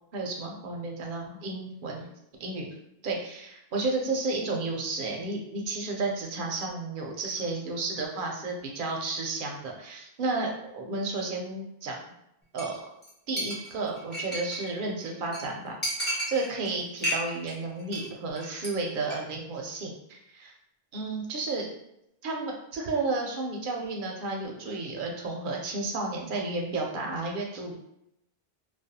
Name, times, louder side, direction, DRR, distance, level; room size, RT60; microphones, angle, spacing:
voice 1, 0.1-2.1 2.4-2.7 3.0-12.0 12.5-12.8 13.3-15.8 16.3-20.5 20.9-21.7 22.2-27.8, right 3 dB, 60° right, 0 dB, 0.7 m, -32 dB
Chink clink, 12.6-12.8 13.0-13.1 13.4-14.7 15.0-15.1 15.3-15.4 15.8-16.7 17.0-17.5 17.8-18.1 18.4-18.7 19.0-19.2, right 1 dB, 10° left, 0.6 m, -32 dB
2.4 x 2.2 x 2.7 m, 0.82 s
omnidirectional pair, 1.1 m